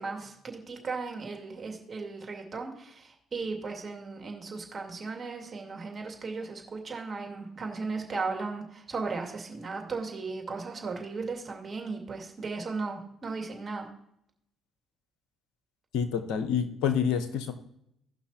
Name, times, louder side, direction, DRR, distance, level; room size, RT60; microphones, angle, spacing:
voice 1, 0.0-13.9, right 4 dB, 40° right, 3 dB, 2.3 m, -36 dB
voice 2, 15.9-17.5, left 7 dB, 75° left, 9 dB, 0.9 m, -28 dB
16.5 x 5.8 x 2.9 m, 0.74 s
hypercardioid pair, 50°, 0 cm